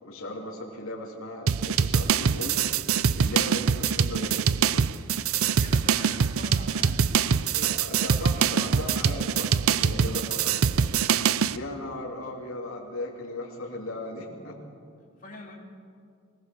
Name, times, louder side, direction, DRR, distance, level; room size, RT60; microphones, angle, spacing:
voice 1, 0.0-2.6 3.1-4.4 7.5-10.5 11.5-14.6, left 1 dB, 75° left, -1 dB, 2.9 m, -37 dB
sound 1, 1.5-11.6, right 6 dB, 80° right, 0.5 m, -24 dB
voice 2, 5.5-7.0 9.6-9.8 15.2-15.5, left 2 dB, 40° left, -4 dB, 3.1 m, -44 dB
24.5 x 17.5 x 6.9 m, 2.3 s
head